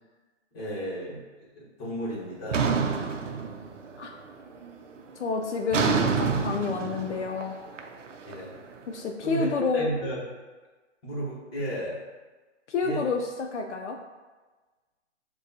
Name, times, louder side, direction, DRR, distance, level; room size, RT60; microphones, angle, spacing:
voice 1, 0.5-2.7 8.2-8.6 9.2-10.2 11.0-12.0 12.8-13.0, right 1 dB, 20° left, -6 dB, 1.1 m, -33 dB
sound 1, 2.5-4.1 4.4-4.8 5.7-8.8, right 5 dB, 90° right, 0.6 m, -28 dB
voice 2, 5.2-7.6 8.9-9.9 12.7-14.0, left 4 dB, 70° left, 3 dB, 0.6 m, -29 dB
6.5 x 2.3 x 2.7 m, 1.3 s
hypercardioid pair, 160°, 36 cm